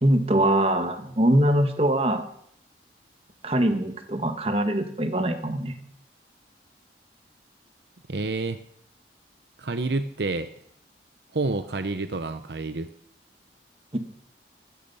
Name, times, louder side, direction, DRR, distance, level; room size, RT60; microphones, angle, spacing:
voice 1, 0.0-2.2 3.4-5.7 13.9-14.0, right 1 dB, 35° right, 7 dB, 1.5 m, -23 dB
voice 2, 8.1-8.6 9.6-10.5 11.3-12.9, right 3 dB, 70° right, 10 dB, 0.8 m, -28 dB
15.5 x 14.5 x 5.5 m, 0.70 s
head